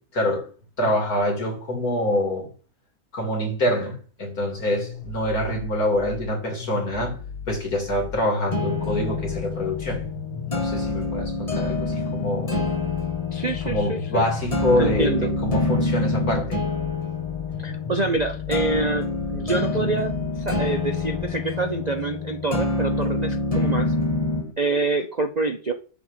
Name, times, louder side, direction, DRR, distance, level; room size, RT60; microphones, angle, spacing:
voice 1, 0.1-0.4 0.8-2.5 3.1-7.2 7.5-10.0 10.4-12.6 13.6-15.1 15.4-16.6, left 1 dB, 65° left, 3.5 m, -25 dB
sound 1, 4.4-21.3, left 6 dB, 90° left, 1.6 m, -37 dB
sound 2, 8.5-24.5, left 3 dB, 25° left, 1.6 m, -27 dB
voice 2, 13.3-14.2 14.8-15.3 17.6-23.9 24.6-25.7, right 3 dB, 40° right, 0.6 m, -26 dB
10.5 x 4.2 x 7.4 m
omnidirectional pair, 1.7 m